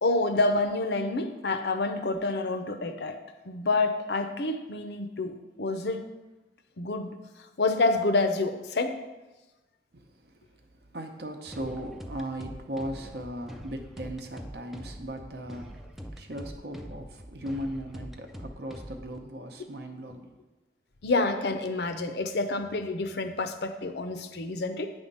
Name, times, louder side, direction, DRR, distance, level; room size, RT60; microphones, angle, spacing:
voice 1, 0.0-3.2 3.5-6.1 6.8-7.1 7.6-9.0 21.0-24.9, left 3 dB, 70° left, 8 dB, 0.6 m, -28 dB
voice 2, 9.9-20.4, right 1 dB, 60° right, 4 dB, 0.8 m, -38 dB
sound 1, 11.5-19.2, equal, ahead, 0.3 m, -43 dB
8.7 x 3.6 x 5.4 m, 1.1 s
head